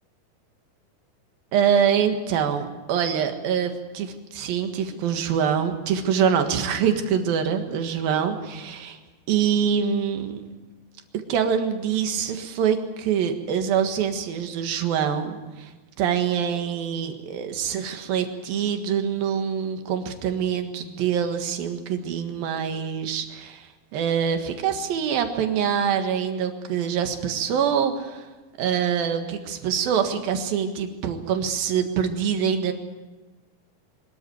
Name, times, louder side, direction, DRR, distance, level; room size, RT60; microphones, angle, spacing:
voice 1, 1.5-9.0 9.3-10.4 11.3-15.7 16.0-28.3 28.6-32.7, right 8 dB, 70° right, 6 dB, 3.3 m, -25 dB
23.5 x 13.5 x 9.3 m, 1.2 s
omnidirectional pair, 4.5 m